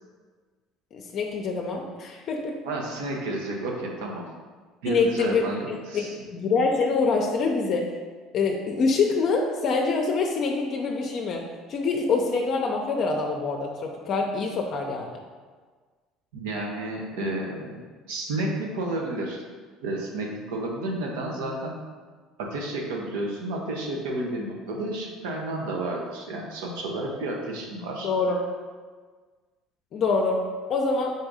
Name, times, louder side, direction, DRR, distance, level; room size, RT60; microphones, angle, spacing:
voice 1, 0.9-2.6 4.8-7.9 8.3-15.1 28.0-28.4 29.9-30.4 30.7-31.1, left 4 dB, 50° left, 1 dB, 0.5 m, -25 dB
voice 2, 2.6-4.2 4.8-6.1 16.3-17.8 18.1-19.4 19.8-21.7 22.4-28.1, right 2 dB, 85° right, 0 dB, 0.8 m, -31 dB
4.1 x 2.6 x 4.7 m, 1.5 s
supercardioid pair, 95°, 0 cm